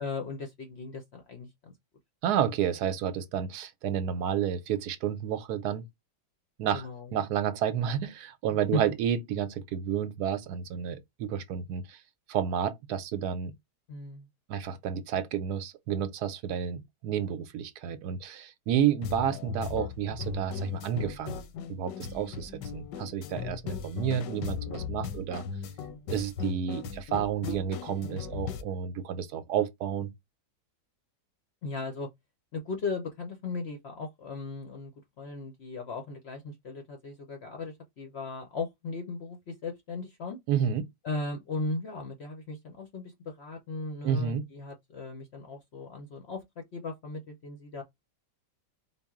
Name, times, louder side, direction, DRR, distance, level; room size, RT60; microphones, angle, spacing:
voice 1, 0.0-1.8 6.7-7.2 8.5-8.8 13.9-14.3 31.6-32.1 32.5-40.4 41.0-47.8, left 3 dB, 65° left, 0.6 m, -37 dB
voice 2, 2.2-5.9 6.6-12.0 12.3-13.5 14.5-21.4 21.7-25.4 26.1-30.1 40.5-40.9 44.0-44.4, right 9 dB, 75° right, 1.1 m, -30 dB
sound 1, 19.0-28.6, left 6 dB, 90° left, 1.3 m, -37 dB
4.2 x 2.0 x 3.5 m
omnidirectional pair, 1.8 m